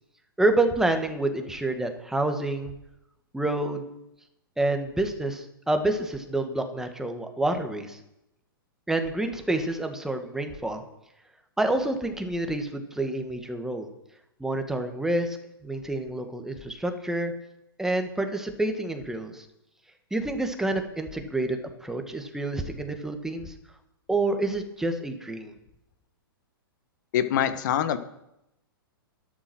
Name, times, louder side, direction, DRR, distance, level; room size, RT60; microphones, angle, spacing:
voice 1, 0.4-2.7 3.3-3.9 4.6-8.0 8.9-10.8 11.6-13.9 14.4-15.4 15.6-17.3 17.8-19.5 20.1-23.5 24.1-25.5, right 2 dB, 5° right, 5 dB, 1.9 m, -28 dB
voice 2, 27.1-28.0, left 10 dB, 50° left, 11 dB, 1.5 m, -24 dB
12.5 x 11.5 x 6.3 m, 0.85 s
figure-of-eight pair, 110°, 12 cm